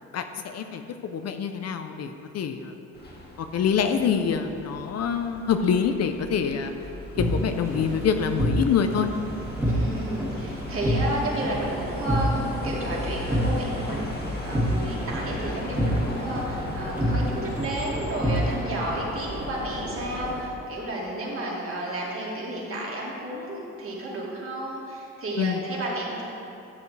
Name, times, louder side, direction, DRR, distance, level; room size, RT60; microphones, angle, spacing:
voice 1, 0.1-2.7 3.4-6.7 7.2-9.1 25.4-25.6, left 7 dB, 55° left, 7 dB, 0.6 m, -26 dB
sound 1, 2.9-20.5, left 1 dB, 30° left, 1.6 m, -37 dB
sound 2, 7.2-18.6, equal, 10° right, 2.0 m, -28 dB
voice 2, 9.6-26.3, right 1 dB, 45° right, -4 dB, 2.3 m, -32 dB
12.0 x 6.9 x 3.3 m, 2.7 s
cardioid pair, 90°, 30 cm